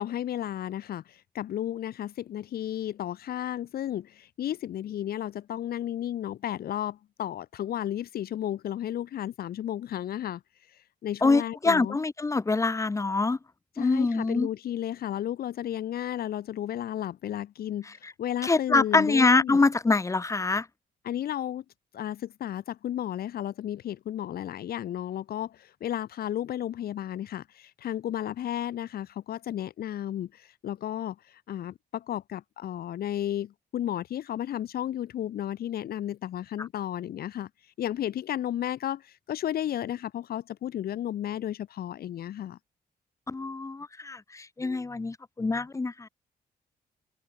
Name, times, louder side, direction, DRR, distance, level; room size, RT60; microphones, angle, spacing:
voice 1, 0.0-10.4 10.7-12.0 13.8-19.7 21.0-21.6 21.9-42.6, left 11 dB, 75° left, 8.0 m, -33 dB
voice 2, 11.2-13.4 13.8-14.5 18.4-20.7 43.3-46.1, left 3 dB, 20° left, 2.9 m, -25 dB
cardioid pair, 140°, 16 cm